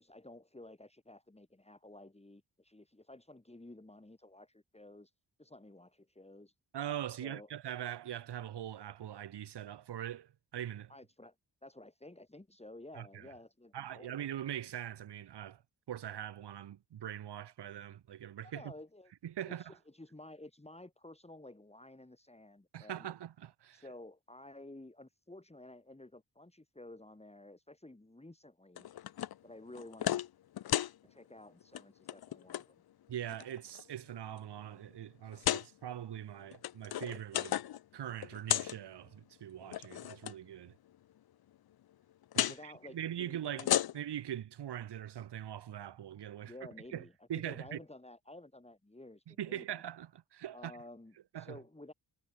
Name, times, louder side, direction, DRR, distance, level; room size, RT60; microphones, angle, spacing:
voice 1, 0.0-5.1 5.4-6.5 7.1-7.5 10.9-11.3 11.6-14.2 18.4-19.1 19.5-23.1 23.7-28.9 29.4-30.1 31.0-32.8 42.4-43.7 46.4-49.8 50.5-51.9, left 2 dB, 15° left, 3.6 m, -53 dB
voice 2, 6.7-10.9 13.0-13.3 13.7-15.6 15.9-18.6 19.2-19.7 22.7-23.8 33.1-37.6 37.9-40.7 42.4-43.7 43.9-46.5 46.9-47.0 47.3-47.8 49.3-50.7 51.3-51.6, right 11 dB, 90° right, 0.8 m, -42 dB
Metal Flap Magnet, 28.8-29.4 29.7-30.3 30.6-30.9 31.6-31.8 32.1-32.6 33.3-33.8 34.4-34.5 35.3-35.7 36.4-37.8 38.1-38.8 39.6-40.3 42.3-42.6 43.4-44.2, left 12 dB, 65° left, 0.5 m, -34 dB
wide cardioid pair, 95°, 39 cm